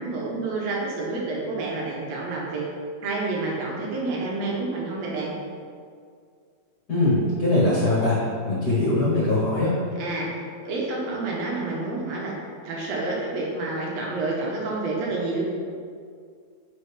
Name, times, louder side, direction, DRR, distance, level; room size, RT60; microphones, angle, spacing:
voice 1, 0.0-2.7 3.0-5.3 10.0-10.3 10.6-12.4 12.6-15.4, right 3 dB, 70° right, -3 dB, 2.2 m, -29 dB
voice 2, 6.9-8.2 8.4-9.7, left 2 dB, 45° left, -7 dB, 1.5 m, -21 dB
9.7 x 4.3 x 3.6 m, 2.2 s
omnidirectional pair, 3.3 m